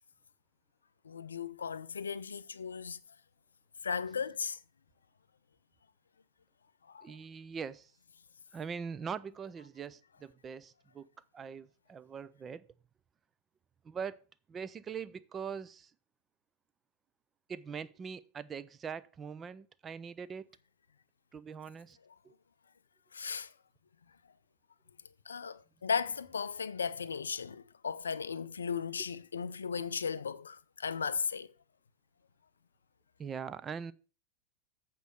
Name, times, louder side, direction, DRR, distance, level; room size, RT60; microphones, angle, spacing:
voice 1, 1.0-3.0 3.8-4.6 6.9-7.1 23.1-23.5 25.3-31.5, left 6 dB, 70° left, 0.4 m, -36 dB
voice 2, 7.0-7.9 8.5-12.7 13.8-14.2 14.5-15.9 17.5-20.5 21.3-22.0 22.2-22.3 33.2-33.9, right 6 dB, 20° right, 0.5 m, -42 dB
8.1 x 4.6 x 6.6 m
figure-of-eight pair, 90°, 0 cm